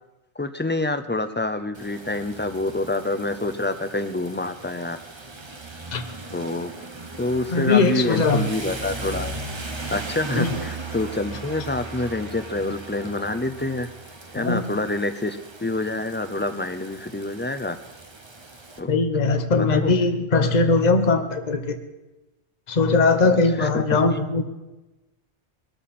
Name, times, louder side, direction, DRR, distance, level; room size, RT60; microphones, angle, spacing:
voice 1, 0.4-5.0 6.3-6.7 7.2-9.4 9.9-13.9 14.3-17.8 18.8-18.9 19.6-19.9 23.3-24.0, left 2 dB, 20° left, 8 dB, 0.3 m, -27 dB
Rain, 1.7-18.8, right 3 dB, 25° right, 0.9 m, -38 dB
voice 2, 7.5-8.4 10.3-10.5 14.4-14.7 18.9-21.8 22.7-24.4, left 3 dB, 40° left, 7 dB, 1.1 m, -20 dB
20.5 x 13.5 x 4.3 m, 1.1 s
omnidirectional pair, 1.1 m